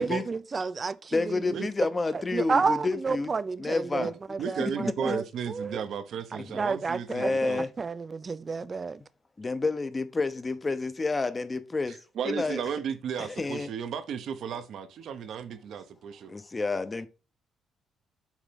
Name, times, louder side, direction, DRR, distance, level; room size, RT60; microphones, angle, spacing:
voice 1, 0.0-1.6 2.1-5.8 6.6-7.5 7.8-9.0, right 4 dB, 35° right, 0.5 m, -31 dB
voice 2, 1.1-3.3 3.6-4.1 4.6-5.2 6.4-6.6 7.1-7.7 9.4-12.0 12.2-12.6 13.2-13.7 16.3-17.1, left 3 dB, 25° left, 0.8 m, -29 dB
voice 3, 4.4-7.6 11.9-16.3, right 7 dB, 70° right, 0.9 m, -34 dB
7.2 x 4.0 x 3.7 m
cardioid pair, 90°, 0 cm